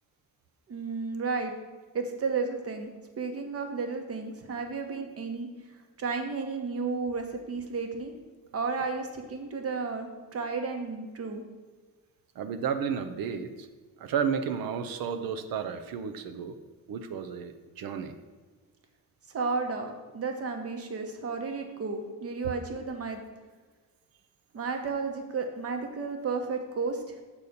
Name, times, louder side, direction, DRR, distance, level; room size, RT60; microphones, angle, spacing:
voice 1, 0.7-1.5 1.9-5.5 6.0-8.1 8.5-11.4 19.3-23.2 24.5-27.1, right 4 dB, 45° right, 4 dB, 1.1 m, -33 dB
voice 2, 12.4-13.7 14.0-16.6 16.9-18.1, right 7 dB, 85° right, 8 dB, 0.7 m, -32 dB
7.2 x 4.1 x 6.6 m, 1.4 s
cardioid pair, 140°, 34 cm